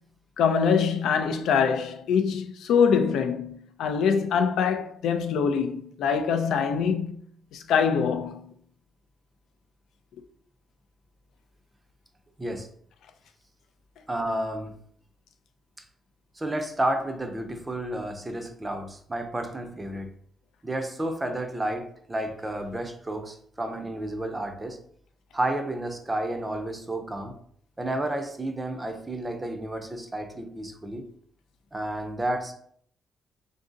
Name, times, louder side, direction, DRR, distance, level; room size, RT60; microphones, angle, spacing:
voice 1, 0.4-7.2 7.5-8.5, left 6 dB, 90° left, 0.4 m, -24 dB
voice 2, 14.1-14.7 16.4-20.1 20.6-24.8 25.3-27.3 27.8-31.1 31.7-32.5, right 1 dB, 15° right, 0.5 m, -31 dB
3.8 x 2.6 x 3.7 m
cardioid pair, 145°, 0 cm